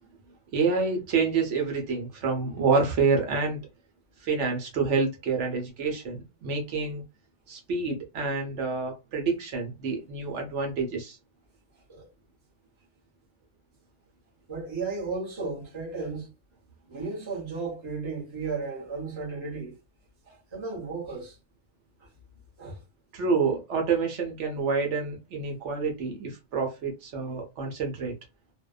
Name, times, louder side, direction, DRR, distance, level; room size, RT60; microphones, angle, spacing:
voice 1, 0.5-3.6 4.2-7.0 7.5-11.2 23.1-28.1, right 4 dB, 80° right, 1.1 m, -28 dB
voice 2, 14.5-16.3 16.9-19.8 20.2-21.4 22.0-22.1 22.6-22.8, right 4 dB, 25° right, 0.9 m, -34 dB
2.6 x 2.1 x 2.3 m
omnidirectional pair, 1.2 m